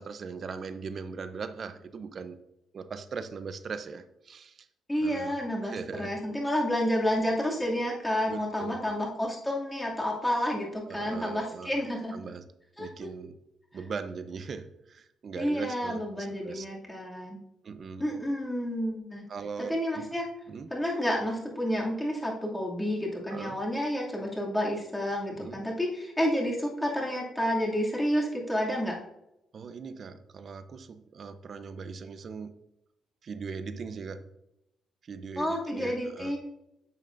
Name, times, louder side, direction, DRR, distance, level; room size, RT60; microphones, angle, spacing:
voice 1, 0.0-2.4 2.7-4.7 5.0-5.4 5.6-6.1 8.3-9.0 10.9-11.8 12.1-12.5 12.8-13.4 13.7-16.7 17.6-18.1 19.3-20.1 20.5-20.7 23.3-23.6 25.3-25.6 29.5-32.6 33.2-34.3 35.0-36.3, right 5 dB, 50° right, 11 dB, 0.7 m, -40 dB
voice 2, 4.9-12.3 12.8-12.9 15.4-17.4 18.0-19.3 19.6-20.3 20.7-29.0 35.4-36.4, equal, 10° left, -3 dB, 2.5 m, -30 dB
10.0 x 7.0 x 2.6 m, 0.87 s
cardioid pair, 90°, 0 cm